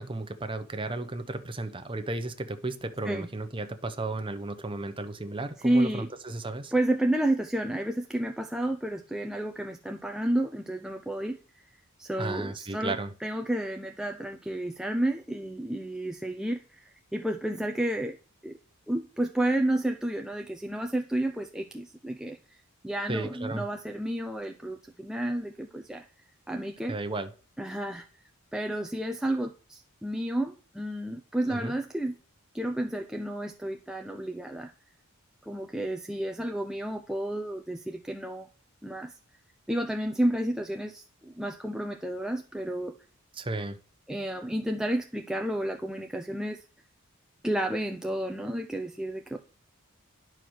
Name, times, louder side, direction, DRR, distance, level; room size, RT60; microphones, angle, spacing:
voice 1, 0.0-6.7 12.2-13.1 23.1-23.6 26.9-27.3 31.5-31.7 43.3-43.8, right 2 dB, 25° right, 8 dB, 0.9 m, -34 dB
voice 2, 5.6-6.1 6.7-18.2 18.4-18.6 18.9-26.0 26.5-27.0 27.6-28.1 28.5-32.2 32.5-34.7 35.4-38.5 38.8-39.1 39.7-43.0 44.1-46.6 47.4-49.4, right 1 dB, 5° right, 4 dB, 0.5 m, -31 dB
10.5 x 4.6 x 6.4 m, 0.38 s
head